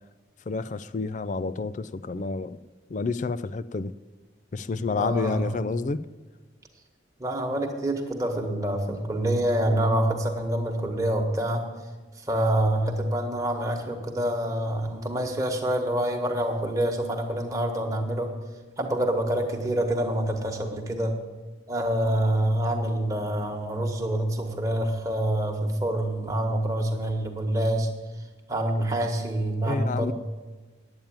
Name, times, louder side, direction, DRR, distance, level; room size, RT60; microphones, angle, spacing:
voice 1, 0.5-2.6 2.9-3.9 4.5-6.0 29.6-30.1, left 4 dB, 40° left, 15 dB, 0.4 m, -29 dB
voice 2, 4.9-5.6 7.2-11.6 12.2-18.3 18.8-21.1 21.7-27.9 28.5-30.1, right 1 dB, 15° right, 2 dB, 1.3 m, -26 dB
9.2 x 8.8 x 8.9 m, 1.3 s
head